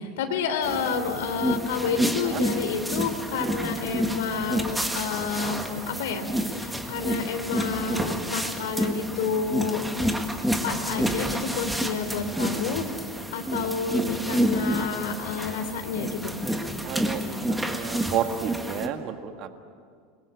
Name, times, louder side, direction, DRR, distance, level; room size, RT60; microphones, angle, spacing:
voice 1, 0.0-9.8 10.6-12.8 13.3-16.4, left 5 dB, 85° left, 7 dB, 3.2 m, -29 dB
sound 1, 0.6-18.9, equal, 5° right, 1.5 m, -29 dB
voice 2, 16.8-19.6, right 9 dB, 35° right, 6 dB, 1.7 m, -31 dB
29.5 x 21.0 x 8.4 m, 2.1 s
supercardioid pair, 165°, 0 cm